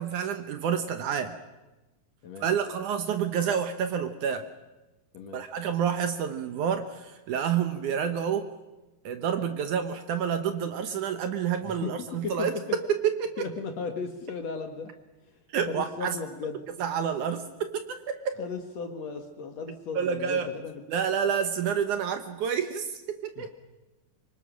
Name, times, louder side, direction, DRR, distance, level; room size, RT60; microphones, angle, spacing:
voice 1, 0.0-1.4 2.4-4.5 5.3-8.5 9.0-12.6 12.9-13.4 15.5-16.2 16.8-18.4 20.0-20.5 20.9-23.5, right 7 dB, 65° right, 8 dB, 2.2 m, -29 dB
voice 2, 5.1-5.5 11.6-12.8 13.4-15.0 15.3-16.7 18.4-20.8 23.4-23.5, left 4 dB, 55° left, 6 dB, 2.2 m, -36 dB
25.0 x 23.5 x 6.3 m, 1.1 s
omnidirectional pair, 4.3 m